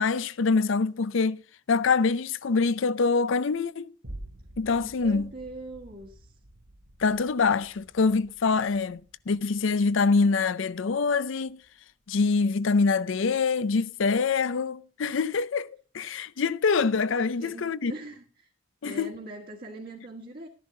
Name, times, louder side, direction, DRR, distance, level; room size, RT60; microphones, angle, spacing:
voice 1, 0.0-1.4 1.7-3.9 4.6-5.3 7.0-9.0 9.3-11.6 12.1-15.7 15.9-17.9 18.8-19.1, left 4 dB, 65° left, 0.5 m, -25 dB
sound 1, 4.0-12.6 13.1-13.2, right 1 dB, 80° right, 2.7 m, -49 dB
voice 2, 4.8-6.3 17.2-18.5 18.8-20.5, right 2 dB, 45° right, 1.5 m, -42 dB
13.0 x 11.0 x 3.8 m
head